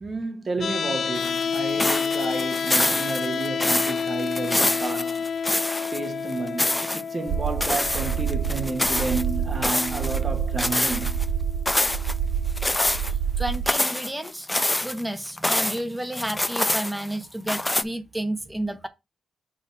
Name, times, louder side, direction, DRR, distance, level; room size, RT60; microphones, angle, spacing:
voice 1, 0.0-5.3 5.9-11.2, right 3 dB, 40° right, 1.3 m, -31 dB
sound 1, 0.6-12.6, left 6 dB, 60° left, 0.4 m, -31 dB
sound 2, 1.2-6.0 6.3-7.0 7.6-9.2 9.6-10.2 10.6-11.3 11.7-12.1 12.6-13.1 13.5-15.8 16.1-17.1 17.5-17.8, left 1 dB, 15° left, 0.6 m, -26 dB
sound 3, 7.3-13.7, right 8 dB, 75° right, 0.5 m, -28 dB
voice 2, 13.4-14.5 14.8-18.9, right 1 dB, 10° right, 1.1 m, -31 dB
6.3 x 3.0 x 5.4 m
cardioid pair, 70°, 0 cm